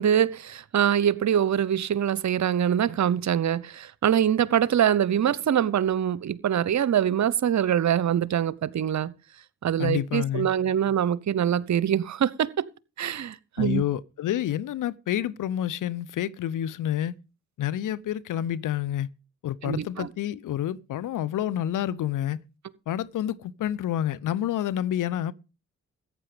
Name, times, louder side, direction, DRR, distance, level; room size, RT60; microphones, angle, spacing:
voice 1, 0.0-9.1 9.6-12.5 13.0-13.8 19.6-20.1, right 9 dB, 55° right, 0.9 m, -24 dB
voice 2, 9.8-10.5 13.6-17.1 17.6-19.1 19.4-22.4 22.9-25.3, left 11 dB, 65° left, 0.8 m, -28 dB
14.5 x 8.9 x 5.1 m
hypercardioid pair, 50°, 34 cm